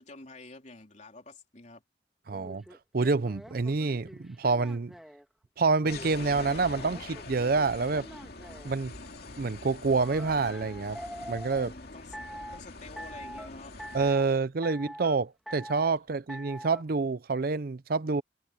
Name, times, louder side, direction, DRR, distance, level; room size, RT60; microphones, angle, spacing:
voice 1, 0.0-1.8 11.6-12.2 12.5-13.8, left 2 dB, 40° left, 3.7 m, -49 dB
sound 1, 2.3-5.2 5.8-8.7 10.0-11.7 12.1-12.6 13.0-13.5 13.8-14.3 14.6-15.2 15.5-15.9 16.3-16.8, equal, ahead, 2.4 m, -44 dB
voice 2, 2.3-2.6 2.9-4.9 5.6-8.1 8.6-8.9 9.4-11.0 11.3-11.7 13.9-18.2, right 4 dB, 55° right, 0.6 m, -27 dB
sound 2, 5.9-14.1, left 3 dB, 60° left, 2.4 m, -44 dB
head